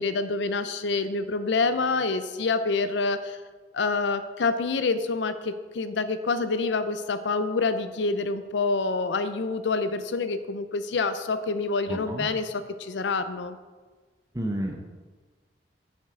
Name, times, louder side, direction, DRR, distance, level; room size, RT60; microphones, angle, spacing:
voice 1, 0.0-3.4 3.7-13.6, left 3 dB, 75° left, 11 dB, 0.5 m, -27 dB
voice 2, 11.9-12.3 14.3-14.8, right 1 dB, 20° right, 1 dB, 0.7 m, -30 dB
8.8 x 7.4 x 3.7 m, 1.4 s
head